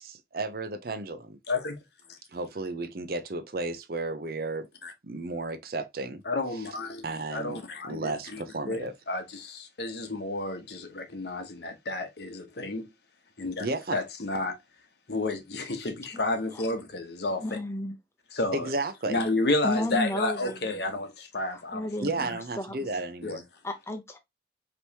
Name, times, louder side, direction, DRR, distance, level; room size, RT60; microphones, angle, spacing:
voice 1, 0.0-1.4 2.3-4.7 5.0-6.2 6.5-6.7 7.0-7.6 7.8-8.9 13.6-14.0 18.5-19.2 22.0-23.4, right 2 dB, 55° right, 0.6 m, -33 dB
voice 2, 6.3-8.4 8.7-12.9 13.4-13.7 13.9-14.6 15.1-17.4 18.3-18.7 19.1-21.8 23.2-23.4, left 2 dB, 65° left, 0.9 m, -31 dB
voice 3, 17.4-17.9 19.6-20.8 21.5-22.8 23.6-24.2, left 1 dB, 15° left, 0.8 m, -33 dB
5.1 x 3.1 x 2.8 m
head